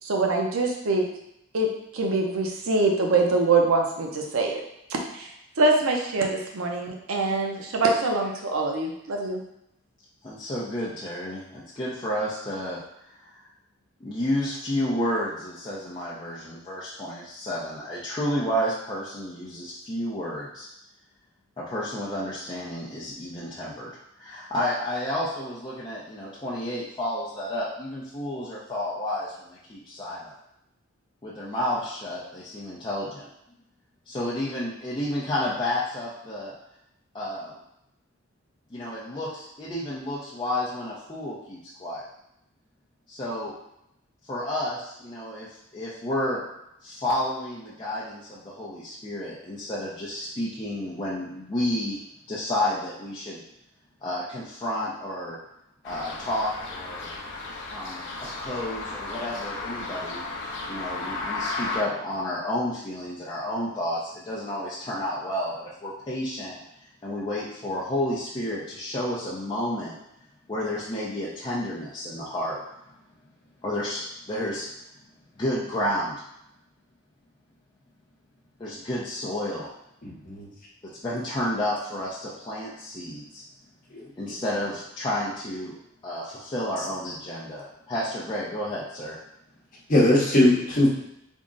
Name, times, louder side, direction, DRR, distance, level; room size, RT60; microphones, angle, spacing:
voice 1, 0.0-1.0 1.5-1.7 1.9-4.6 4.9-5.3 5.6-9.4, right 3 dB, 90° right, 1 dB, 0.6 m, -24 dB
voice 2, 10.2-12.8 13.1-13.4 14.0-20.7 21.6-23.9 24.2-30.4 31.2-33.3 34.1-36.5 37.1-37.5 38.7-42.1 43.1-43.5 44.3-46.4 46.8-52.0 52.3-53.4 54.0-55.4 55.8-57.1 57.7-58.0 58.3-60.2 60.7-66.6 67.0-70.0 70.5-72.6 73.6-74.7 75.4-76.2 78.6-79.7 81.0-83.4 84.2-85.8 86.0-89.2, left 1 dB, 25° left, -8 dB, 0.5 m, -31 dB
sound 1, 55.8-61.8, left 3 dB, 60° left, 0.6 m, -34 dB
voice 3, 80.0-80.5 83.9-84.1 89.9-90.9, left 1 dB, 45° left, -4 dB, 0.9 m, -20 dB
3.5 x 2.1 x 3.8 m, 0.81 s
head